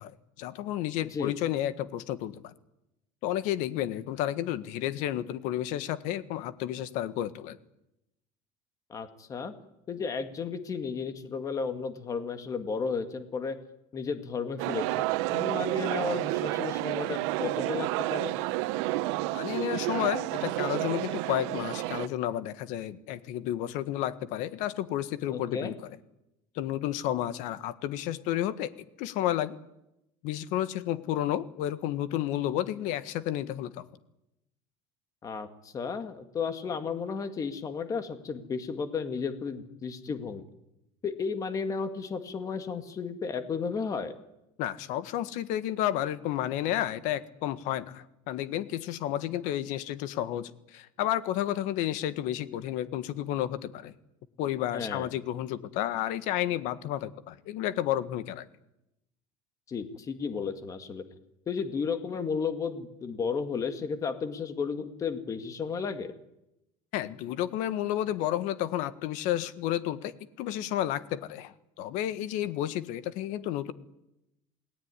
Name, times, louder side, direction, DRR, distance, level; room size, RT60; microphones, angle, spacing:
voice 1, 0.0-2.5 3.2-7.6 19.3-25.7 26.5-28.7 29.0-29.6 30.2-33.8 44.6-53.9 54.4-58.4 66.9-73.7, left 12 dB, 60° left, 14 dB, 1.6 m, -31 dB
voice 2, 8.9-9.5 9.9-13.6 13.9-15.0 15.3-18.3 25.3-25.7 35.2-40.4 41.0-44.1 54.7-55.1 59.7-61.0 61.5-66.1, left 5 dB, 25° left, 9 dB, 2.0 m, -33 dB
sound 1, 14.6-22.1, right 18 dB, 85° right, 1.3 m, -30 dB
28.0 x 19.5 x 9.9 m, 0.88 s
cardioid pair, 165°, 14 cm